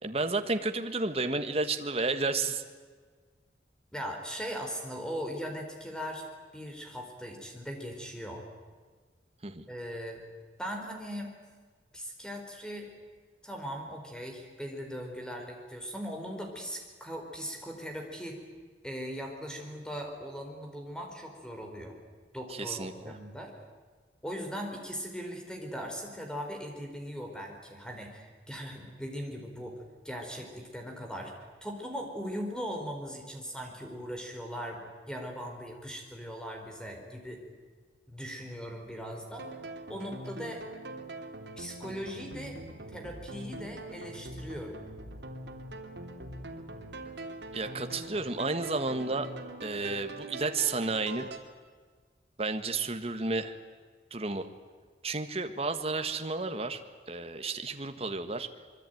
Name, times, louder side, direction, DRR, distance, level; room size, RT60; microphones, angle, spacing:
voice 1, 0.0-2.6 9.4-9.7 22.5-23.2 47.5-49.3 49.6-51.3 52.4-53.5 54.1-54.5 55.0-58.5, right 3 dB, 35° right, 7 dB, 1.6 m, -32 dB
voice 2, 3.9-6.2 6.5-8.4 9.7-10.2 10.6-11.3 11.9-12.9 13.4-18.4 18.8-22.0 22.3-23.7 24.2-29.7 30.0-31.3 31.6-37.4 38.1-39.6 39.9-40.6 41.6-42.6 42.9-44.7, equal, 5° left, 3 dB, 4.5 m, -39 dB
sound 1, 39.4-51.4, right 2 dB, 80° right, 2.9 m, -43 dB
25.5 x 23.0 x 9.3 m, 1.5 s
head